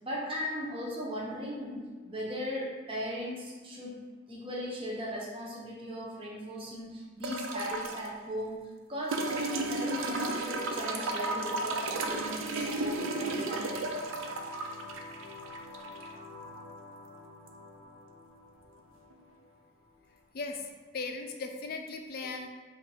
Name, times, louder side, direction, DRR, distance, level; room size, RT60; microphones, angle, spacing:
voice 1, 0.0-3.9 4.3-8.6 8.9-13.8, equal, 30° right, -4 dB, 0.7 m, -38 dB
sound 1, 7.2-8.1 9.1-16.1 17.5-17.6, right 2 dB, 85° right, 0.4 m, -34 dB
sound 2, 9.2-20.2, left 4 dB, 5° left, 0.7 m, -47 dB
voice 2, 20.3-22.5, left 3 dB, 50° left, 4 dB, 0.4 m, -38 dB
3.6 x 2.5 x 4.3 m, 1.4 s
head